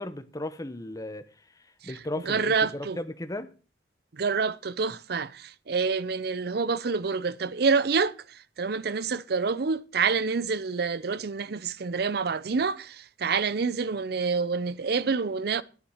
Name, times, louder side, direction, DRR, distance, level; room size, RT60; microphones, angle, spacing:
voice 1, 0.0-3.5, left 1 dB, 20° left, 1.0 m, -36 dB
voice 2, 2.3-3.0 4.1-15.6, right 5 dB, 60° right, 0.6 m, -27 dB
10.0 x 10.0 x 6.4 m
head